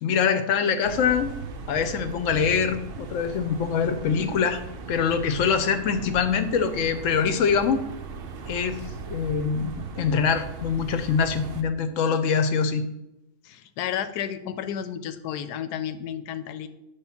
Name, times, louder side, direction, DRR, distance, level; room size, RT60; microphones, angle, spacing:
voice 1, 0.0-1.3 1.7-4.6 4.9-7.9 8.5-8.8 9.1-12.8, left 6 dB, 65° left, 10 dB, 0.8 m, -24 dB
sound 1, 0.8-11.6, right 5 dB, 65° right, 0.5 m, -38 dB
voice 2, 13.4-16.7, left 9 dB, 85° left, 12 dB, 1.1 m, -32 dB
8.0 x 3.4 x 5.7 m, 0.90 s
omnidirectional pair, 1.7 m